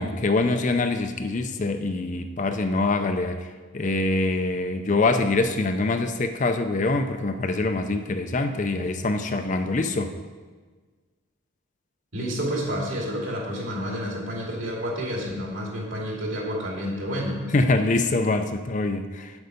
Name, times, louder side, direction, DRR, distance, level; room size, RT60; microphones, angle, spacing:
voice 1, 0.0-3.4 3.7-10.1 17.5-19.3, left 2 dB, 35° left, 7 dB, 0.5 m, -24 dB
voice 2, 12.1-17.4, equal, 65° right, -2 dB, 2.4 m, -29 dB
8.0 x 8.0 x 5.2 m, 1.4 s
head